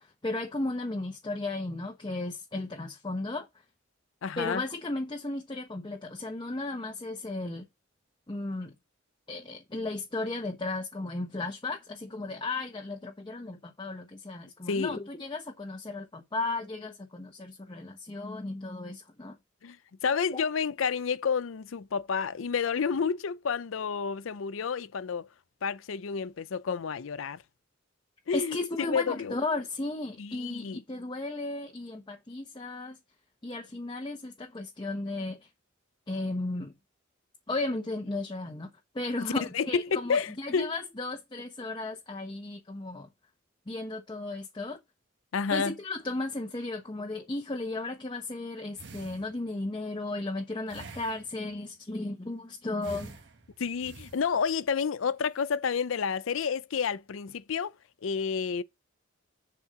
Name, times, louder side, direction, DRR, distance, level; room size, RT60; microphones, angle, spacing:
voice 1, 0.0-3.5 4.4-7.6 8.3-8.7 9.3-19.4 20.3-20.4 28.3-33.0 33.4-35.4 36.1-36.7 37.5-38.7 38.9-43.1 43.7-44.8 45.5-53.2, left 2 dB, 25° left, 1.0 m, -35 dB
voice 2, 4.2-4.6 14.7-15.0 19.6-19.8 20.0-25.3 25.6-27.4 28.3-28.6 28.9-29.4 30.2-30.8 39.2-40.7 45.3-45.7 53.6-57.7 58.0-58.6, left 6 dB, 70° left, 0.5 m, -30 dB
sound 1, 48.8-49.7 50.7-51.6 52.8-54.7 55.3-55.6, right 3 dB, 60° right, 1.4 m, -48 dB
7.3 x 4.4 x 6.6 m
head